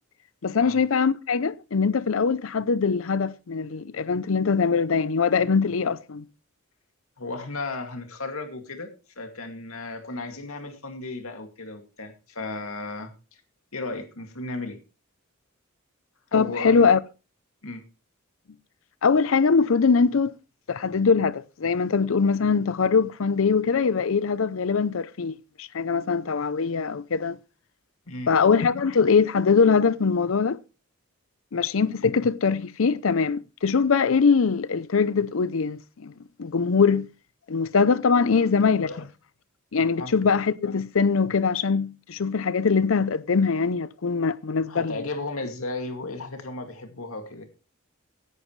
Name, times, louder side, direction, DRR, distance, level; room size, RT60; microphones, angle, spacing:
voice 1, 0.4-6.3 16.3-17.0 19.0-20.4 20.7-27.4 28.3-30.6 31.5-36.1 36.4-37.1 37.5-38.9 39.7-45.0, left 5 dB, 70° left, 0.6 m, -22 dB
voice 2, 7.2-13.1 13.7-14.8 16.3-16.8 17.6-17.8 28.1-28.3 38.8-39.0 40.0-40.1 44.7-47.4, left 2 dB, 85° left, 2.3 m, -34 dB
17.0 x 11.0 x 3.2 m
head